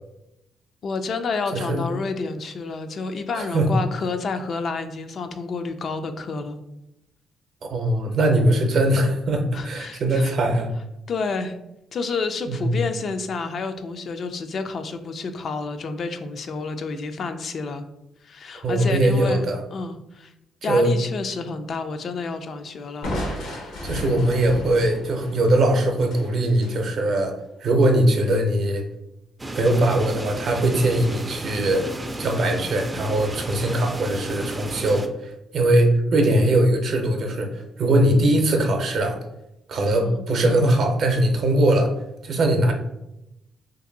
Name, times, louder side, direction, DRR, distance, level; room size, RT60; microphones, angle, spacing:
voice 1, 0.8-6.6 9.5-10.3 11.1-11.6 11.9-17.8 18.2-20.3 20.6-23.2 40.0-40.2, left 4 dB, 55° left, 8 dB, 0.3 m, -29 dB
voice 2, 1.5-1.9 3.3-3.7 7.6-10.7 12.5-12.8 18.6-19.6 20.7-20.9 23.8-27.3 27.6-28.8 29.5-31.9 32.2-39.2 39.7-41.9 42.2-42.7, right 1 dB, 60° right, 4 dB, 0.6 m, -21 dB
Crushing, 23.0-26.8, equal, 85° left, 0.9 m, -33 dB
sound 1, 29.4-35.1, right 1 dB, 15° right, 0.4 m, -33 dB
2.6 x 2.6 x 3.8 m, 0.87 s
cardioid pair, 90°, 0 cm